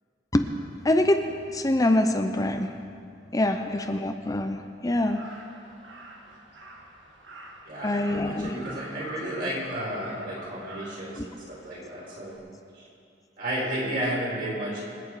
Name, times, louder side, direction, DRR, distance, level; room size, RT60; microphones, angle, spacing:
voice 1, 0.8-2.7 3.3-5.3 7.8-8.8 11.2-11.3, left 1 dB, 20° left, 6 dB, 0.6 m, -25 dB
voice 2, 3.5-3.9 7.6-11.2 11.5-12.3 12.7-12.8 13.4-14.8, right 1 dB, 55° right, -5 dB, 4.6 m, -32 dB
Crow, 5.0-12.4, right 1 dB, 85° right, 2.0 m, -46 dB
25.5 x 8.8 x 4.8 m, 2.5 s
head